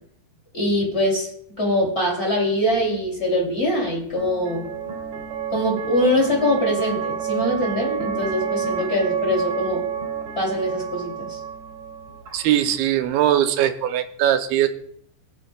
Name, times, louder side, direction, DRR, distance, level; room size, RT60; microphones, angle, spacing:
voice 1, 0.5-1.3 1.6-4.7 5.5-9.8 10.4-11.4, left 1 dB, 20° left, -1 dB, 2.2 m, -23 dB
sound 1, 2.7-13.0, right 7 dB, 50° right, 3.4 m, -30 dB
voice 2, 12.3-14.7, right 11 dB, 85° right, 7 dB, 2.6 m, -20 dB
22.0 x 7.6 x 2.2 m, 0.64 s
omnidirectional pair, 4.4 m